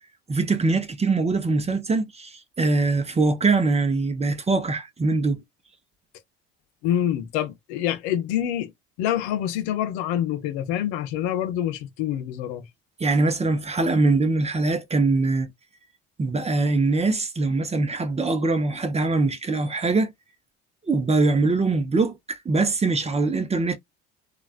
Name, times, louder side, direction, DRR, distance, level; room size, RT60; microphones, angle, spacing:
voice 1, 0.3-5.4 13.0-15.5 16.2-20.1 20.9-23.8, right 3 dB, 20° right, 0.6 m, -22 dB
voice 2, 6.8-8.7 9.0-12.7, left 11 dB, 75° left, 0.7 m, -26 dB
3.2 x 2.4 x 2.4 m
hypercardioid pair, 70°, 32 cm